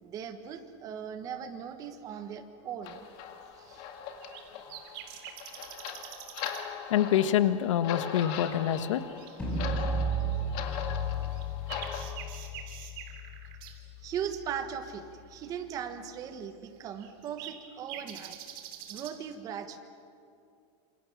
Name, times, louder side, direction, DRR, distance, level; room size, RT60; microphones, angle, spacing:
voice 1, 0.0-3.1 3.5-3.9 14.0-18.4 18.9-19.8, right 8 dB, 25° right, 8 dB, 1.4 m, -39 dB
sound 1, 2.8-12.0, left 8 dB, 35° left, 2.1 m, -40 dB
sound 2, 4.1-4.4 4.7-6.6 7.2-7.3 7.7-10.7 11.1-13.7 15.7-15.8 16.4-16.5 17.0-19.1, right 10 dB, 45° right, 3.0 m, -46 dB
voice 2, 6.9-9.0, left 10 dB, 80° left, 12 dB, 1.4 m, -26 dB
sound 3, 9.4-15.4, right 1 dB, 5° left, 6.0 m, -35 dB
27.5 x 27.0 x 7.3 m, 2.4 s
supercardioid pair, 175°, 16 cm